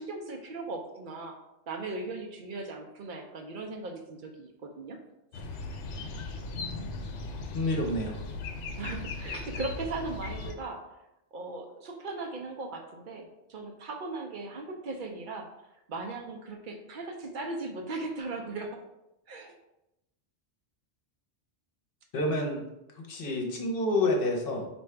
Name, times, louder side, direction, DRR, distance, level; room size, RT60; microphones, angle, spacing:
voice 1, 0.0-1.3 1.7-5.0 8.8-10.8 11.3-15.5 15.9-18.7 19.3-19.5, right 3 dB, 55° right, 3 dB, 0.6 m, -38 dB
sound 1, 5.3-10.5, left 3 dB, 85° left, 0.9 m, -38 dB
voice 2, 7.5-8.2 22.1-22.6 22.9-24.7, left 1 dB, 55° left, 1 dB, 0.9 m, -28 dB
4.7 x 2.6 x 3.3 m, 0.89 s
omnidirectional pair, 1.2 m